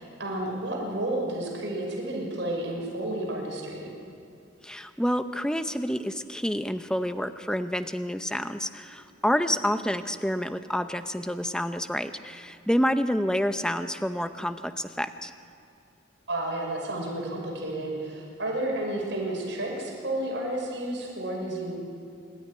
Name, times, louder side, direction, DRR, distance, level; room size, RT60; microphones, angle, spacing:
voice 1, 0.0-3.9 9.5-9.6 16.3-21.7, right 1 dB, 70° right, -1 dB, 6.0 m, -31 dB
voice 2, 4.6-15.3, equal, 5° left, 9 dB, 0.7 m, -28 dB
26.0 x 13.5 x 10.0 m, 2.7 s
head